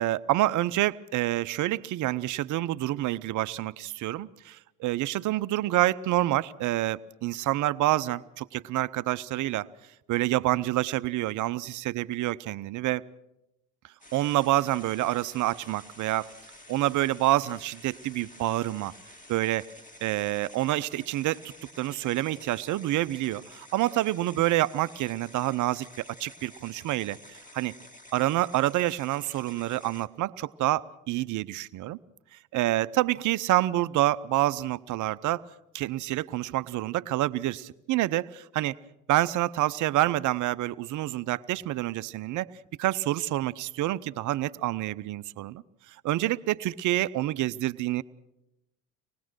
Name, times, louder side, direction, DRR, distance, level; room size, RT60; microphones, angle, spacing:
voice 1, 0.0-9.7 10.1-13.0 14.1-16.3 16.7-18.9 19.3-19.7 20.0-25.9 26.2-27.7 28.1-32.0 32.5-35.4 35.7-38.8 39.1-42.5 42.8-48.0, right 15 dB, 45° right, 15 dB, 0.7 m, -27 dB
sound 1, 14.0-30.1, left 1 dB, 15° left, 2.2 m, -51 dB
25.0 x 19.5 x 6.3 m, 0.90 s
hypercardioid pair, 65°, 44 cm